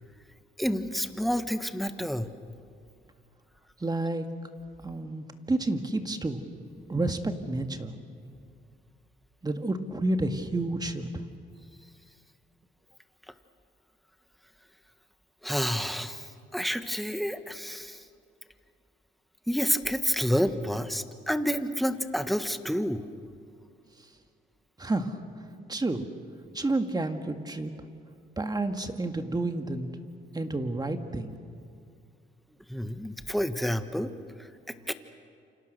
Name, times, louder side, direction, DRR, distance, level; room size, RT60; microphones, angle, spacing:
voice 1, 0.6-2.3 13.3-13.4 15.4-18.0 19.5-23.1 32.7-34.1 34.4-34.9, equal, ahead, 9 dB, 1.4 m, -29 dB
voice 2, 3.8-4.3 4.8-6.4 6.9-8.0 9.4-11.2 24.8-25.1 25.7-26.1 26.5-27.7 28.4-29.9 30.3-31.4, right 2 dB, 20° right, 6 dB, 2.0 m, -30 dB
29.0 x 26.0 x 6.8 m, 2.4 s
cardioid pair, 90°, 20 cm